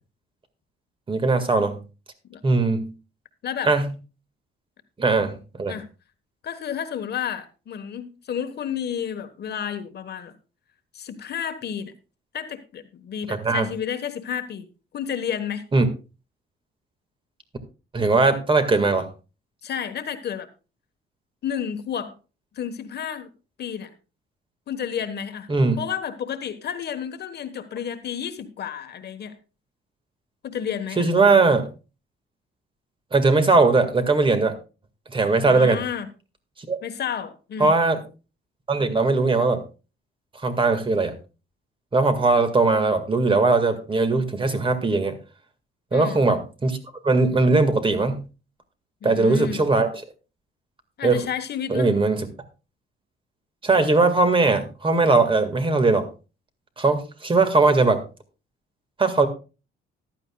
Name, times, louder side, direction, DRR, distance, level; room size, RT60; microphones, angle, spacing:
voice 1, 1.1-1.8 2.4-2.9 3.6-3.9 5.0-5.8 13.3-13.7 15.7-15.9 17.9-19.1 25.5-25.8 31.0-31.7 33.1-34.5 35.1-35.8 36.7-36.8 37.6-38.0 38.7-39.6 40.4-41.1 41.9-45.2 45.9-46.8 47.0-48.2 49.0-49.9 51.0-51.2 51.7-52.3 53.6-56.1 56.8-58.0 59.0-59.3, right 3 dB, 25° right, 8 dB, 1.8 m, -20 dB
voice 2, 6.4-10.3 10.9-11.9 12.3-14.7 14.9-15.6 19.6-20.5 21.4-22.1 22.5-23.3 23.6-23.9 24.7-25.5 25.8-29.3 30.4-31.1 35.4-36.1 36.8-37.7 45.9-46.2 49.0-49.6 51.0-51.9, left 8 dB, 55° left, 9 dB, 1.3 m, -31 dB
14.5 x 11.5 x 2.3 m, 0.32 s
cardioid pair, 120°, 21 cm